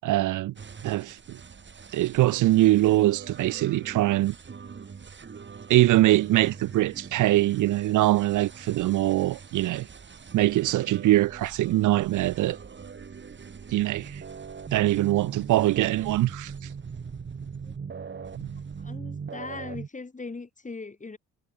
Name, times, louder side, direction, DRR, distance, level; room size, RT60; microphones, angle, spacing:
voice 1, 0.0-0.5 0.8-1.4 1.9-4.3 5.7-9.9 10.3-12.6 13.7-14.2 14.7-16.5 18.4-18.5, right 16 dB, 80° right, 0.9 m, -23 dB
sound 1, 0.6-19.9, right 6 dB, 40° right, 4.2 m, -42 dB
voice 2, 18.8-21.2, left 3 dB, 25° left, 6.5 m, -39 dB
cardioid pair, 90°, 30 cm